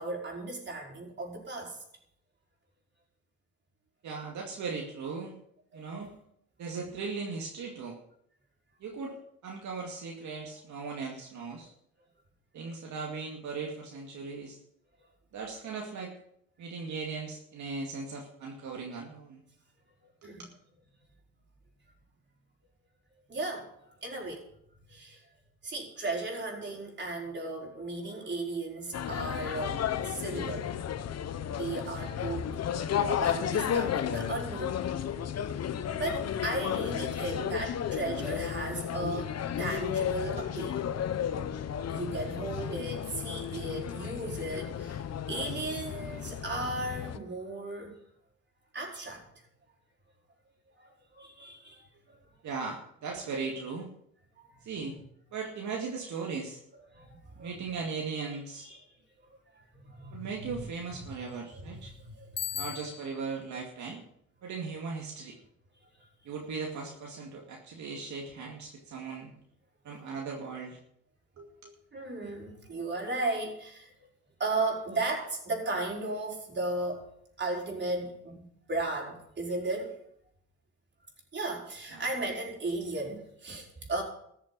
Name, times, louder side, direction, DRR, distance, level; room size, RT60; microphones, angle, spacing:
voice 1, 0.0-1.8 5.7-6.2 20.0-20.5 23.3-23.7 24.0-24.4 24.9-25.2 25.6-30.7 31.5-34.8 35.8-39.3 39.6-40.9 41.7-48.0 48.7-49.4 50.8-52.2 54.4-54.6 56.7-57.8 58.6-58.8 59.5-60.6 61.0-62.6 66.0-66.1 71.9-74.1 74.4-77.0 77.4-80.0 81.3-84.0, right 2 dB, 35° right, -1 dB, 5.2 m, -36 dB
voice 2, 4.0-5.4 5.7-6.1 6.6-8.0 8.8-9.2 9.4-11.7 12.5-14.6 15.3-16.1 16.6-19.4 20.2-20.3 52.4-53.9 54.6-55.0 55.3-56.6 57.4-58.7 60.1-61.9 62.5-64.0 64.4-65.4 66.3-69.3 69.8-70.8 71.4-71.7 81.9-82.0, right 4 dB, 70° right, 0 dB, 2.3 m, -38 dB
sound 1, 28.9-47.2, left 9 dB, 55° left, 1.1 m, -33 dB
Bicycle bell, 62.4-63.3, left 10 dB, 35° left, 0.5 m, -37 dB
14.0 x 7.4 x 8.6 m, 0.71 s
cardioid pair, 90°, 30 cm